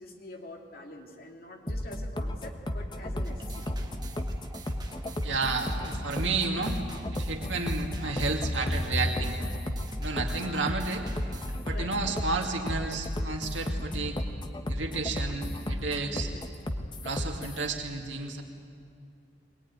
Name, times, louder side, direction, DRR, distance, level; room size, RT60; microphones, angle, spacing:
voice 1, 0.0-3.8 10.3-10.7 11.7-12.0 16.0-16.4, left 1 dB, 50° left, 2 dB, 2.6 m, -46 dB
sound 1, 1.7-17.6, left 1 dB, 25° left, 1.1 m, -33 dB
sound 2, 3.2-11.6, right 2 dB, 20° right, 1.4 m, -46 dB
voice 2, 5.2-6.8 7.1-9.4 10.0-11.0 11.6-14.2 14.7-16.3 17.0-18.4, right 3 dB, 90° right, 2 dB, 2.6 m, -31 dB
22.5 x 19.5 x 9.6 m, 2.3 s
head